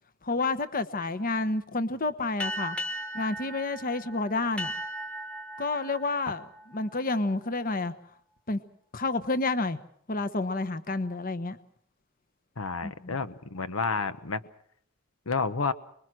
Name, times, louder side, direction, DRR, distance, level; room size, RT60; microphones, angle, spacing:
voice 1, 0.2-2.8 3.1-4.7 5.6-6.5 6.7-7.9 8.5-8.6 8.9-9.8 10.1-11.6 12.8-13.2, left 3 dB, 40° left, 11 dB, 1.1 m, -29 dB
sound 1, 2.4-7.5, equal, 5° left, 1.3 m, -38 dB
voice 2, 12.6-14.4 15.3-15.7, left 4 dB, 85° left, 11 dB, 1.1 m, -30 dB
25.0 x 21.5 x 6.3 m, 0.67 s
head